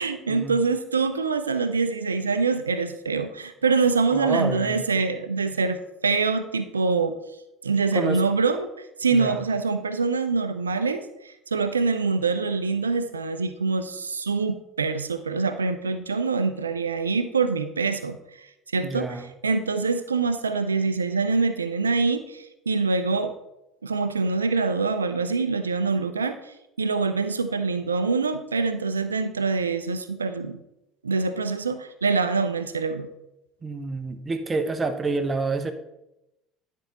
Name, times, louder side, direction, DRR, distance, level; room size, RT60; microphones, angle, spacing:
voice 1, 0.0-5.8 6.0-7.2 7.6-8.7 9.0-11.0 11.5-18.2 18.7-19.2 19.4-23.3 23.8-30.6 31.0-33.1, right 4 dB, 90° right, 10 dB, 0.4 m, -25 dB
voice 2, 4.1-4.9 7.9-8.2 9.1-9.4 18.8-19.3 33.6-35.7, right 3 dB, 25° right, 9 dB, 0.8 m, -28 dB
9.8 x 4.6 x 4.0 m, 0.87 s
hypercardioid pair, 65°, 0 cm